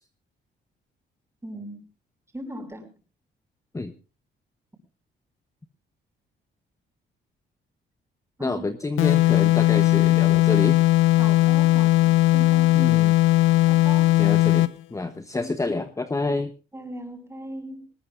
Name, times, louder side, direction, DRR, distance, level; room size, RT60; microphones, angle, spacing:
voice 1, 1.4-1.9 2.3-2.9 8.4-8.6 11.2-13.0 13.5-14.2 16.7-17.9, right 1 dB, 15° right, 4 dB, 5.6 m, -38 dB
voice 2, 8.4-10.8 12.7-13.1 14.2-16.5, left 3 dB, 15° left, 10 dB, 0.9 m, -28 dB
sound 1, 9.0-14.8, left 17 dB, 85° left, 0.7 m, -18 dB
20.0 x 20.0 x 2.5 m, 0.32 s
cardioid pair, 90°, 20 cm